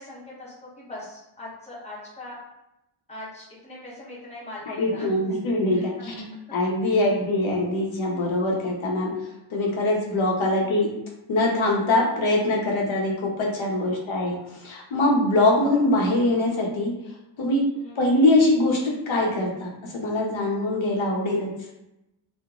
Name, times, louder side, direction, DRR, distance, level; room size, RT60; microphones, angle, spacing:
voice 1, 0.0-2.4 3.1-5.1 5.7-5.8 10.4-10.6 13.8-14.0 17.8-18.0, left 1 dB, 15° left, -7 dB, 1.0 m, -41 dB
voice 2, 4.7-6.3 6.5-9.1 9.5-10.9 11.3-16.9 17.4-17.6 18.0-21.5, left 1 dB, 80° left, -1 dB, 0.8 m, -23 dB
2.9 x 2.1 x 3.6 m, 0.89 s
wide cardioid pair, 150°, 46 cm